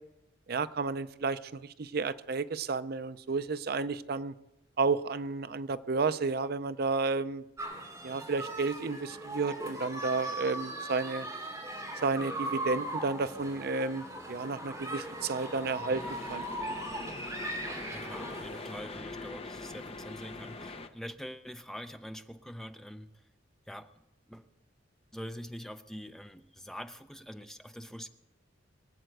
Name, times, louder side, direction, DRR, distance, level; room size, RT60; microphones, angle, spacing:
voice 1, 0.5-4.3 4.8-7.4 8.0-11.3 12.0-16.4, right 4 dB, 50° right, 14 dB, 0.5 m, -32 dB
sound 1, 7.6-18.8, right 1 dB, 15° right, 2.8 m, -39 dB
sound 2, 15.9-20.9, left 3 dB, 30° left, 0.9 m, -43 dB
voice 2, 17.6-23.2 23.7-23.9 24.3-24.5 25.1-28.1, equal, ahead, 9 dB, 0.5 m, -44 dB
23.5 x 7.9 x 7.7 m, 0.93 s
head